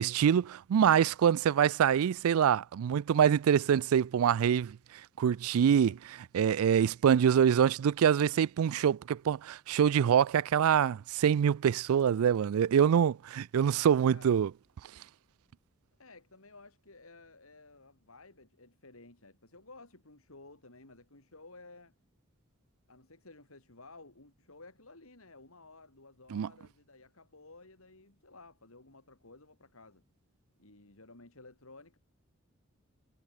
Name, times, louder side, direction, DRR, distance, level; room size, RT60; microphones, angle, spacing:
voice 1, 0.0-4.8 5.2-6.0 6.3-14.5 26.3-26.5, right 8 dB, 80° right, 0.3 m, -25 dB
voice 2, 5.7-6.0 13.9-14.4 16.0-21.9 22.9-30.0 30.6-32.0, left 3 dB, 75° left, 4.0 m, -55 dB
head